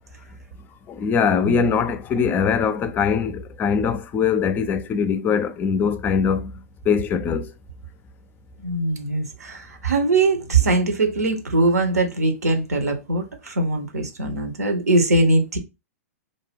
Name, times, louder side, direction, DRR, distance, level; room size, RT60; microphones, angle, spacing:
voice 1, 0.9-7.5, left 6 dB, 20° left, 0.4 m, -22 dB
voice 2, 8.6-15.6, right 2 dB, 80° right, 0.8 m, -21 dB
2.6 x 2.1 x 3.4 m
hypercardioid pair, 110°, 8 cm